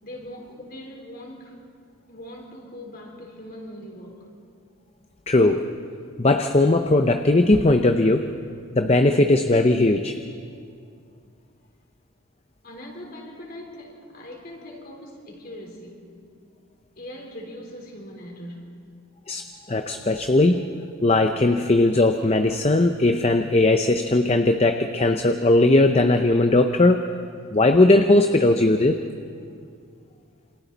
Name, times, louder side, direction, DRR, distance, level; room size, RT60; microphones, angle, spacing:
voice 1, 0.0-1.7 2.1-4.3 12.6-16.2 17.0-18.9, left 1 dB, 45° left, 3.9 m, -41 dB
voice 2, 5.3-5.7 6.2-8.3 8.7-10.1 19.3-20.7 21.0-27.1 27.5-29.0, left 2 dB, 30° left, 0.6 m, -18 dB
28.0 x 27.0 x 4.1 m
head